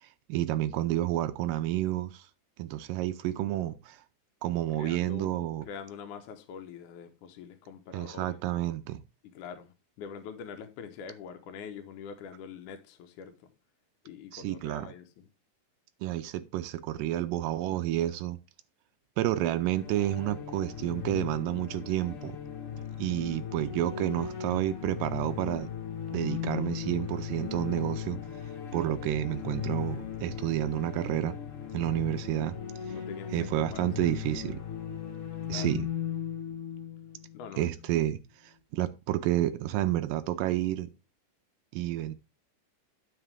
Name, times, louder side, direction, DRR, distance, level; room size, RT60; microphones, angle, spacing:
voice 1, 0.0-2.3 2.6-4.0 4.4-5.7 7.9-9.0 14.3-14.9 16.0-18.4 19.2-22.4 23.0-25.7 26.1-28.2 28.7-31.3 31.7-32.6 32.9-33.0 33.3-34.6 35.5-35.9 37.6-40.9 41.7-42.1, right 14 dB, 85° right, 2.3 m, -30 dB
voice 2, 4.7-8.4 9.2-13.5 14.0-15.2 32.9-34.1 35.5-35.8 37.3-37.7, left 7 dB, 75° left, 2.5 m, -44 dB
sound 1, 19.4-38.0, left 9 dB, 50° left, 2.0 m, -37 dB
9.6 x 7.4 x 3.4 m
omnidirectional pair, 3.8 m